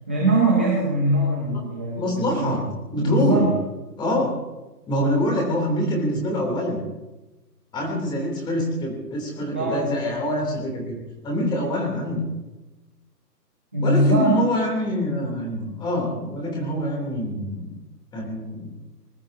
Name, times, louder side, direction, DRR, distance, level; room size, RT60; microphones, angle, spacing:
voice 1, 0.1-2.6 2.9-3.5 9.5-9.9 13.7-14.4, right 1 dB, 5° right, -5 dB, 0.6 m, -21 dB
voice 2, 2.0-3.5 4.0-4.3 4.9-6.8 7.7-11.0 11.2-12.3 13.8-17.7 18.1-18.7, equal, 10° left, 0 dB, 3.2 m, -25 dB
24.5 x 20.0 x 2.8 m, 1.1 s
hypercardioid pair, 155°, 49 cm